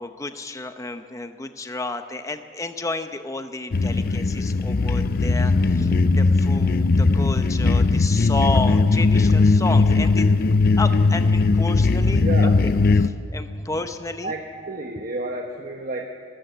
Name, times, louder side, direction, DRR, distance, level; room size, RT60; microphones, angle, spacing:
voice 1, 0.0-10.3 10.8-12.7 13.0-14.3, left 2 dB, 15° left, 8 dB, 0.7 m, -31 dB
sound 1, 3.7-13.1, left 3 dB, 50° left, 0.6 m, -18 dB
voice 2, 12.2-12.6 14.2-16.1, right 2 dB, 45° right, 2 dB, 1.2 m, -30 dB
24.5 x 14.0 x 7.9 m, 2.2 s
head